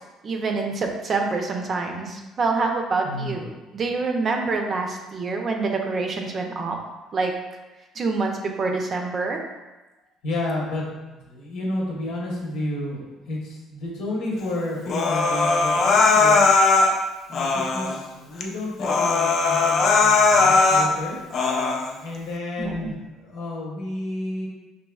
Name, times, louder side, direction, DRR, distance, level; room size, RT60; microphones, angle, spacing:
voice 1, 0.2-6.8 7.1-7.3 8.0-9.4 22.6-22.9, right 3 dB, 35° right, 2 dB, 0.5 m, -26 dB
voice 2, 3.0-3.4 10.2-16.5 17.3-21.2 22.0-24.5, left 1 dB, 80° left, -3 dB, 1.1 m, -31 dB
Human voice, 14.9-16.9 17.3-18.0 18.4-18.5 18.8-20.9 21.3-21.9, left 4 dB, 45° left, 0.4 m, -19 dB
5.2 x 2.7 x 2.3 m, 1.1 s
cardioid pair, 125°, 0 cm